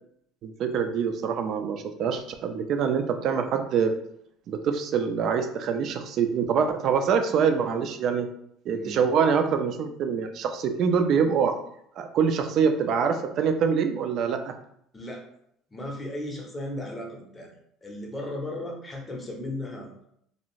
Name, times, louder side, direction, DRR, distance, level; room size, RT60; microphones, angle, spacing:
voice 1, 0.4-3.9 4.5-8.3 8.7-11.5 12.0-14.6, right 6 dB, 45° right, 7 dB, 0.3 m, -25 dB
voice 2, 14.9-15.2 15.7-17.5 17.8-19.9, left 1 dB, 15° left, -1 dB, 0.6 m, -35 dB
2.6 x 2.4 x 3.0 m, 0.71 s
cardioid pair, 150°, 0 cm